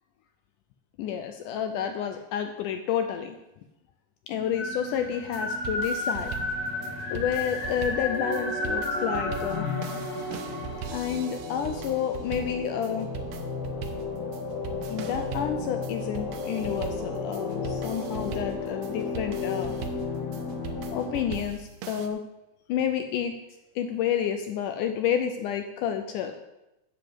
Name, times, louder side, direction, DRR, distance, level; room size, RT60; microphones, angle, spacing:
voice 1, 1.0-3.4 4.3-6.3 7.1-9.7 10.9-13.1 14.9-19.8 20.5-20.6 20.9-22.2 22.7-23.3 23.8-26.3, left 8 dB, 80° left, 7 dB, 1.9 m, -30 dB
sound 1, 4.3-21.4, left 3 dB, 50° left, 3.5 m, -33 dB
sound 2, 5.2-22.1, right 9 dB, 80° right, 1.6 m, -41 dB
7.8 x 7.1 x 7.8 m, 0.94 s
omnidirectional pair, 4.1 m